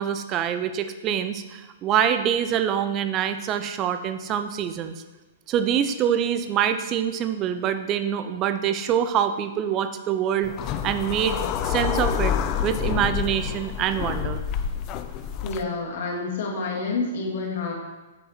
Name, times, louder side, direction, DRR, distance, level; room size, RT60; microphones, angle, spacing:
voice 1, 0.0-4.9 5.5-11.4 11.6-12.4 12.6-14.4, right 9 dB, 30° right, 10 dB, 0.5 m, -25 dB
sound 1, 10.4-15.6, left 8 dB, 30° left, 0.4 m, -28 dB
voice 2, 15.4-17.7, left 3 dB, 65° left, -2 dB, 2.0 m, -28 dB
7.5 x 5.2 x 4.3 m, 1.2 s
hypercardioid pair, 145°, 0 cm